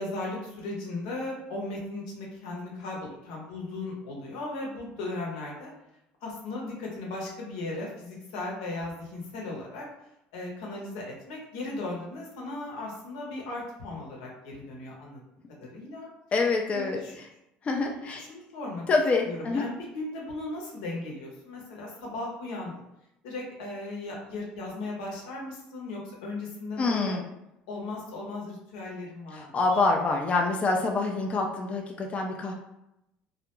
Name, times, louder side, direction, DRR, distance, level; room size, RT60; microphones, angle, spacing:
voice 1, 0.0-5.7 6.2-9.8 10.3-15.2 15.6-16.1 16.7-17.1 17.8-18.8 19.2-22.7 23.2-27.2 27.7-29.8, left 2 dB, 90° left, -2 dB, 0.8 m, -37 dB
voice 2, 16.3-17.3 17.6-18.2 18.9-19.6 26.8-27.2 29.3-32.5, left 3 dB, 30° left, 2 dB, 0.4 m, -26 dB
2.3 x 2.1 x 3.0 m, 0.85 s
supercardioid pair, 90°, 4 cm